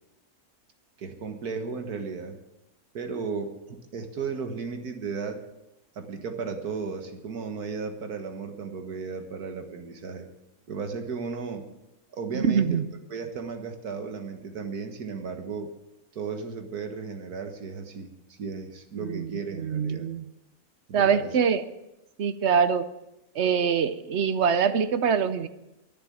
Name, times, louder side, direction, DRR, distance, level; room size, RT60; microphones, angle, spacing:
voice 1, 1.0-2.4 2.9-5.4 6.0-10.3 10.7-11.7 12.1-12.8 13.1-15.7 16.1-20.1 20.9-21.3, right 5 dB, 90° right, 6 dB, 2.0 m, -35 dB
voice 2, 12.3-12.9 19.0-20.3 20.9-21.6 22.2-22.9 23.3-25.5, right 6 dB, 55° right, 12 dB, 1.0 m, -24 dB
11.5 x 9.9 x 9.5 m, 0.92 s
omnidirectional pair, 1.6 m